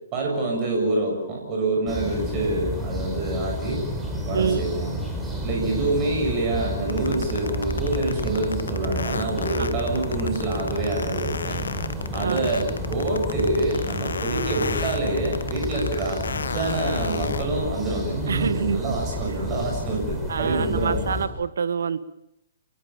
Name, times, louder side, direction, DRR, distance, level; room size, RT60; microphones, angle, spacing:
voice 1, 0.1-3.9 4.3-4.9 5.4-11.7 12.1-16.2 16.5-21.2, right 2 dB, 30° right, 0 dB, 7.3 m, -26 dB
sound 1, 1.9-21.3, equal, 5° right, 6.0 m, -31 dB
voice 2, 4.3-4.7 9.6-9.8 12.2-12.5 18.3-18.8 20.3-22.0, right 6 dB, 60° right, 14 dB, 1.6 m, -26 dB
sound 2, 6.9-17.4, left 4 dB, 70° left, 1.4 m, -31 dB
27.5 x 23.0 x 7.2 m, 0.81 s
figure-of-eight pair, 125°, 0 cm